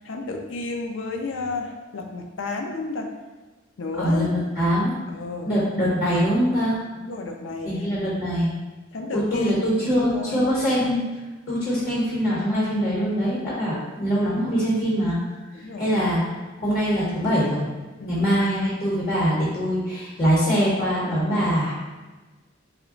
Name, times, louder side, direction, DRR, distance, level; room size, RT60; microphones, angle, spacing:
voice 1, 0.0-3.1 3.8-4.3 5.1-5.5 7.0-7.8 8.9-10.5 15.5-16.0 18.0-18.4, left 3 dB, 80° left, 3 dB, 0.4 m, -32 dB
voice 2, 4.0-4.9 5.4-6.8 7.6-8.5 9.1-11.0 11.5-15.2 15.8-16.2 16.6-17.7 18.1-21.7, equal, 45° left, -7 dB, 0.9 m, -23 dB
3.0 x 2.1 x 3.7 m, 1.2 s
head